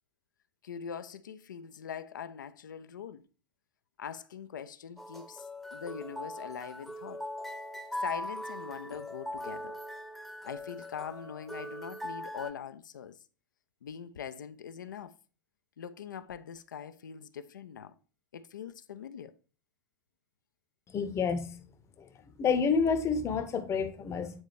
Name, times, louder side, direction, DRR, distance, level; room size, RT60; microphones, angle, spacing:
voice 1, 0.6-3.2 4.0-7.2 8.0-9.8 10.4-13.2 13.8-15.1 15.8-17.9 18.3-19.4, left 8 dB, 70° left, 0.4 m, -42 dB
sound 1, 5.0-12.5, left 1 dB, ahead, 0.8 m, -40 dB
voice 2, 20.9-21.5 22.0-22.1 22.4-24.4, left 5 dB, 25° left, 0.8 m, -29 dB
8.7 x 4.0 x 3.2 m
figure-of-eight pair, 80°, 11 cm